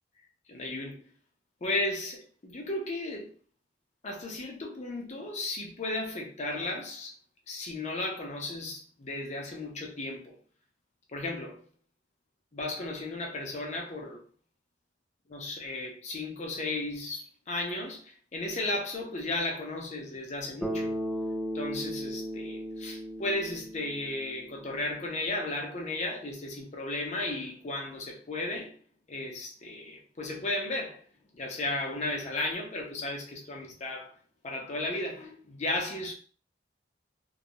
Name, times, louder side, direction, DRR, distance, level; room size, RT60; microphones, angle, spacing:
voice 1, 0.5-1.1 1.6-3.3 4.0-7.1 7.5-10.4 11.1-11.6 12.5-14.2 15.3-20.9 21.5-28.7 29.1-31.0 31.3-34.1 34.4-36.1, left 2 dB, 40° left, 0.6 m, -34 dB
Bass guitar, 20.6-24.8, equal, ahead, 0.6 m, -36 dB
2.3 x 2.0 x 2.8 m
head